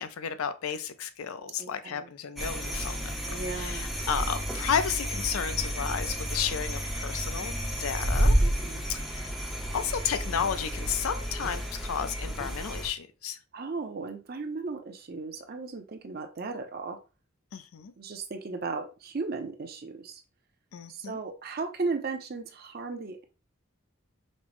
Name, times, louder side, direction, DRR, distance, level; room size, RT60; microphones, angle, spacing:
voice 1, 0.0-7.5 7.8-8.3 8.9-9.5 9.7-13.4 17.5-17.9 20.7-21.2, left 7 dB, 85° left, 0.4 m, -33 dB
voice 2, 1.6-2.1 3.3-3.9 8.4-8.8 13.5-17.0 18.0-20.2 20.9-23.2, right 4 dB, 45° right, 0.5 m, -36 dB
sound 1, 2.4-12.9, equal, ahead, 0.5 m, -31 dB
5.2 x 2.0 x 3.0 m
head